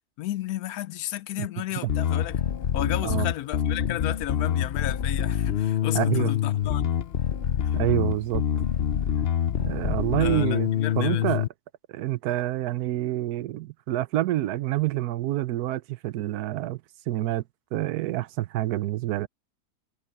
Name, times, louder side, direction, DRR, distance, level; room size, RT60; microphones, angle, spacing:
voice 1, 0.2-2.4 2.7-6.8 7.6-7.8 10.2-11.3, left 13 dB, 75° left, 1.0 m, -33 dB
Bass guitar, 1.9-11.5, left 9 dB, 55° left, 0.7 m, -26 dB
voice 2, 5.9-6.3 7.7-8.4 9.6-10.7 11.0-11.5 11.9-16.8 17.1-17.4 17.7-19.3, right 15 dB, 80° right, 1.1 m, -27 dB
omnidirectional pair, 1.6 m